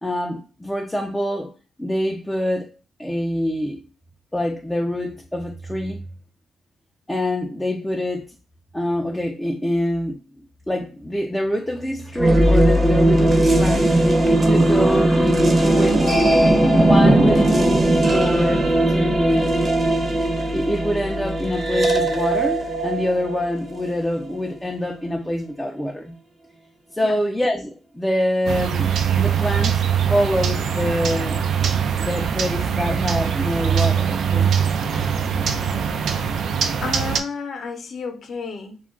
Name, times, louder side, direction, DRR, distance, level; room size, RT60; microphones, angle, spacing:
voice 1, 0.0-1.5 1.8-2.7 3.0-3.8 4.3-6.0 7.1-8.3 8.7-13.9 14.4-16.1 16.8-19.6 20.5-26.1 26.9-28.9 29.2-31.5 32.0-34.6, left 1 dB, 10° left, 0.4 m, -25 dB
sound 1, 12.2-24.0, right 1 dB, 35° right, 0.8 m, -18 dB
sound 2, 28.5-37.2, right 8 dB, 70° right, 0.4 m, -22 dB
voice 2, 36.8-38.8, left 4 dB, 55° left, 0.7 m, -31 dB
2.3 x 2.2 x 3.6 m
cardioid pair, 90°, 0 cm